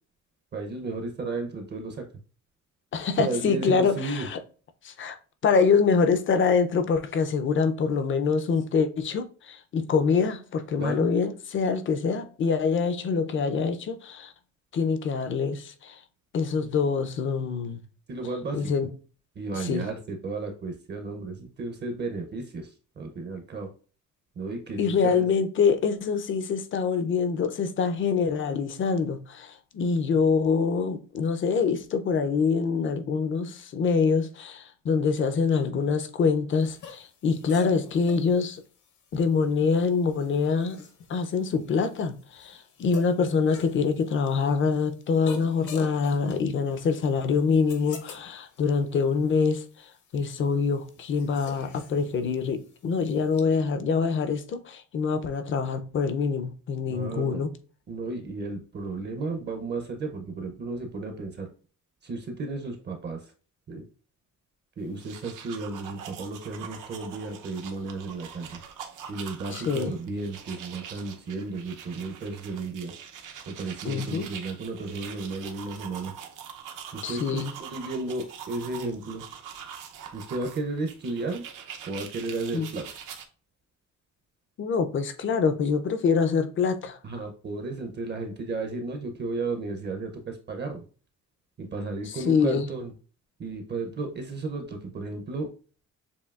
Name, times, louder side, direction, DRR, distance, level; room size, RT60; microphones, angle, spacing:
voice 1, 0.5-2.1 3.2-4.3 10.8-11.1 18.1-18.7 19.4-23.7 24.4-25.3 56.9-57.4 57.9-61.5 62.0-63.3 63.7-63.8 64.8-68.6 69.1-72.9 73.5-76.1 76.9-79.2 80.1-81.4 81.9-82.9 87.0-90.8 91.6-92.9 93.4-95.5, right 3 dB, 35° right, 0.6 m, -33 dB
voice 2, 2.9-4.4 4.8-5.2 5.4-14.3 14.7-16.0 16.3-17.8 18.5-18.9 19.6-19.9 24.8-38.6 39.1-40.8 41.1-57.5 69.5-69.9 73.8-74.3 77.0-77.5 82.5-82.7 84.6-87.0 92.1-92.7, left 5 dB, 40° left, 0.5 m, -25 dB
sound 1, 36.6-53.4, left 6 dB, 65° left, 0.9 m, -47 dB
sound 2, 64.9-83.3, right 8 dB, 75° right, 0.7 m, -43 dB
6.9 x 2.7 x 2.3 m
cardioid pair, 165°, 32 cm